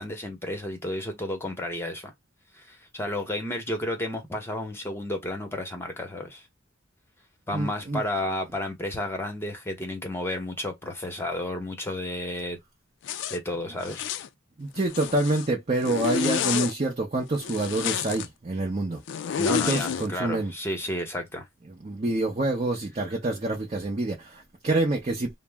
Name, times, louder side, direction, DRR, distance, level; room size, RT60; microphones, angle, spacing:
voice 1, 0.0-2.1 2.5-6.5 7.5-12.6 13.3-14.1 19.4-21.4, left 1 dB, 10° left, 0.8 m, -32 dB
voice 2, 7.5-8.0 14.6-19.0 19.5-20.5 21.8-25.4, right 2 dB, 35° right, 0.6 m, -27 dB
Zipper (clothing), 13.0-13.4 13.8-14.3 14.8-15.5 15.8-16.7 17.4-18.3 19.1-20.1, left 8 dB, 60° left, 0.3 m, -29 dB
2.5 x 2.0 x 3.3 m
head